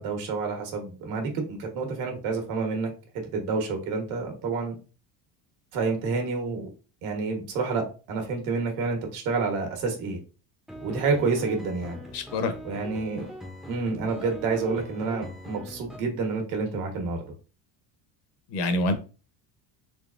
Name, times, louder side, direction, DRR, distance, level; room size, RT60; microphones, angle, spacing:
voice 1, 0.0-2.9 3.3-4.8 5.7-6.7 7.0-10.2 10.8-12.0 12.6-13.3 13.7-17.2, right 4 dB, 75° right, 3 dB, 1.4 m, -28 dB
sound 1, 10.7-16.0, equal, ahead, 0.5 m, -42 dB
voice 2, 12.1-12.5 18.5-18.9, left 2 dB, 55° left, 8 dB, 0.9 m, -26 dB
3.8 x 3.1 x 2.5 m, 0.34 s
cardioid pair, 125°, 48 cm